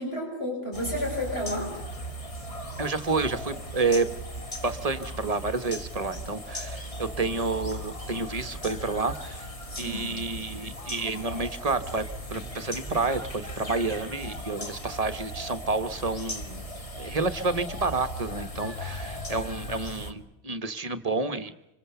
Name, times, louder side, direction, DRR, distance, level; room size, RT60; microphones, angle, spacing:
voice 1, 0.0-1.7 9.7-10.2, left 1 dB, 70° left, -1 dB, 6.6 m, -31 dB
sound 1, 0.7-20.1, equal, 30° left, 1.9 m, -38 dB
voice 2, 2.8-4.2 4.6-9.5 9.8-12.0 12.3-16.7 17.0-21.5, right 3 dB, 35° right, 10 dB, 1.2 m, -29 dB
26.0 x 26.0 x 7.0 m, 0.89 s
omnidirectional pair, 1.1 m